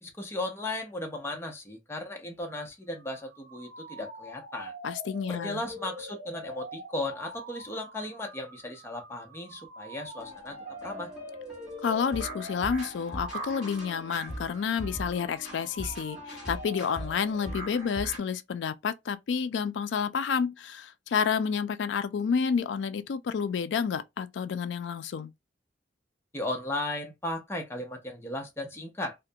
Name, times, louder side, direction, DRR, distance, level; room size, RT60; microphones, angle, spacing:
voice 1, 0.0-4.7 5.3-11.1 26.3-29.2, left 1 dB, 15° left, 0.6 m, -36 dB
sound 1, 3.0-17.7, right 1 dB, 60° right, 0.6 m, -45 dB
voice 2, 4.8-5.6 11.8-25.3, left 6 dB, 80° left, 0.4 m, -30 dB
sound 2, 10.2-18.2, equal, 5° right, 1.2 m, -41 dB
2.4 x 2.1 x 2.6 m
head